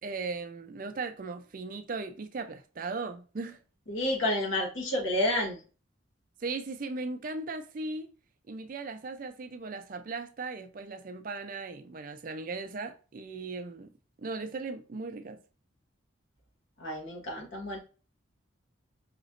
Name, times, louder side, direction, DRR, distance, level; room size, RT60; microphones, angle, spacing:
voice 1, 0.0-3.6 6.4-8.1 8.5-13.9 14.2-15.4, right 3 dB, 40° right, 0.4 m, -37 dB
voice 2, 3.9-5.6 16.8-17.8, left 1 dB, 70° left, 1.3 m, -30 dB
5.0 x 3.0 x 2.5 m
head